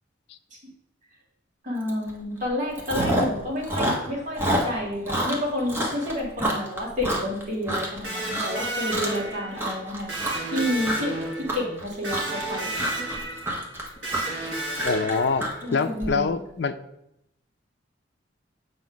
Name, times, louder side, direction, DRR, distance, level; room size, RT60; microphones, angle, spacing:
voice 1, 1.6-10.1 10.5-12.7 15.6-16.4, left 1 dB, 40° right, -4 dB, 2.1 m, -30 dB
Chewing mastication, 1.9-2.1 2.4-3.4 3.6-8.0 8.3-8.7 8.9-9.3 9.6-16.1, right 1 dB, 10° right, 1.0 m, -28 dB
Electric guitar, 8.0-15.7, right 2 dB, 75° right, 2.5 m, -32 dB
voice 2, 14.8-16.8, left 4 dB, 60° left, 8 dB, 0.4 m, -25 dB
7.3 x 5.1 x 3.9 m, 0.82 s
head